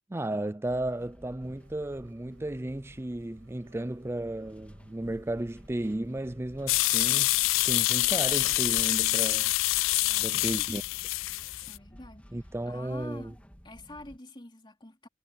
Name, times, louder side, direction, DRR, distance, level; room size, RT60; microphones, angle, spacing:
voice 1, 0.1-7.4 7.7-9.5 10.2-10.8 12.3-13.3, right 1 dB, 10° right, 0.4 m, -34 dB
sound 1, 0.6-14.2, equal, 5° left, 3.2 m, -54 dB
sound 2, 1.4-10.8, right 1 dB, 80° right, 5.0 m, -55 dB
sound 3, 6.7-11.8, left 20 dB, 70° left, 0.3 m, -26 dB
voice 2, 10.0-10.4 11.6-12.4 12.7-13.4 13.6-15.1, left 1 dB, 25° left, 3.2 m, -47 dB
head